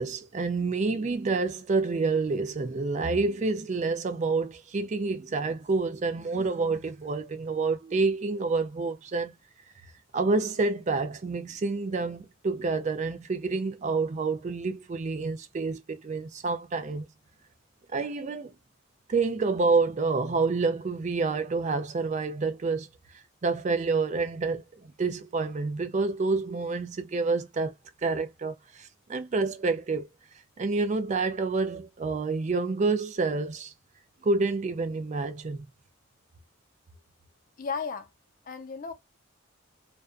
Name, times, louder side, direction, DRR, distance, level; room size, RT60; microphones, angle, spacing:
voice 1, 0.0-9.3 10.1-17.1 17.9-18.5 19.1-22.9 23.4-27.7 28.0-30.1 30.6-33.7 34.2-35.7, right 3 dB, 35° right, 0.4 m, -28 dB
voice 2, 37.6-38.1 38.4-38.9, left 5 dB, 45° left, 0.5 m, -34 dB
2.4 x 2.2 x 2.3 m
head